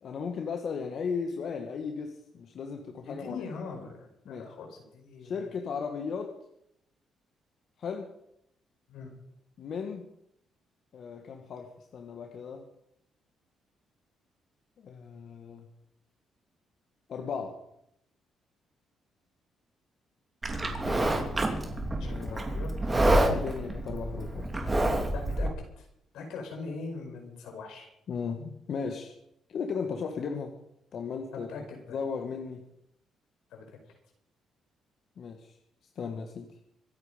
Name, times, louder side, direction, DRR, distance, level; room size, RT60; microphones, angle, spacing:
voice 1, 0.0-3.5 4.3-4.5 5.2-6.4 7.8-8.1 9.6-10.1 10.9-12.7 14.8-15.7 17.1-17.6 22.0-22.4 23.0-24.5 28.1-29.1 29.5-30.6 30.9-31.5 31.9-32.7 35.2-35.6 36.0-36.6, left 5 dB, 60° left, 4 dB, 1.7 m, -36 dB
voice 2, 3.0-5.5 8.9-9.1 20.8-21.5 22.0-22.9 25.1-25.5 25.8-25.9 26.1-27.9 31.3-32.0 33.5-33.6, left 4 dB, 85° left, 3 dB, 5.0 m, -41 dB
Livestock farm animals working animals, 20.4-25.5, right 1 dB, 20° right, 3.0 m, -28 dB
25.5 x 9.1 x 5.3 m, 0.77 s
cardioid pair, 90°, 0 cm